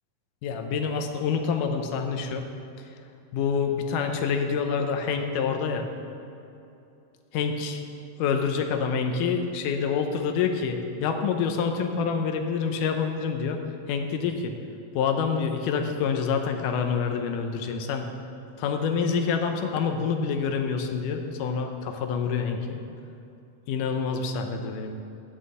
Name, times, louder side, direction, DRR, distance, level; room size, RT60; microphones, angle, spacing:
voice 1, 0.4-2.5 3.3-5.9 7.3-7.8 8.2-13.6 13.9-14.5 15.0-18.1 18.6-22.8 23.7-24.9, left 6 dB, 80° left, 5 dB, 2.2 m, -27 dB
8.4 x 7.5 x 7.7 m, 2.7 s
omnidirectional pair, 3.8 m